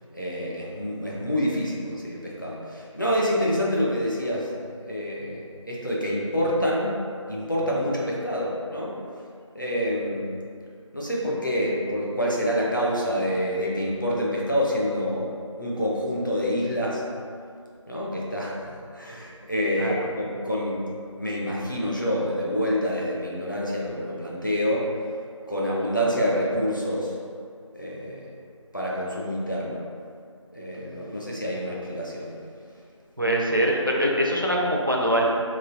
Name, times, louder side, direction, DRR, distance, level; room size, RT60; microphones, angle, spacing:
voice 1, 0.1-4.5 4.9-6.9 7.3-9.0 9.5-10.3 10.9-15.3 15.6-17.0 17.9-18.6 18.9-20.8 21.2-24.9 25.5-27.2 27.7-28.3 28.7-29.8 30.5-32.4, equal, 40° left, -4 dB, 0.5 m, -27 dB
voice 2, 19.7-20.1 33.2-35.3, equal, 40° right, -1 dB, 0.4 m, -23 dB
3.3 x 3.1 x 2.5 m, 2.2 s
figure-of-eight pair, 180°, 16 cm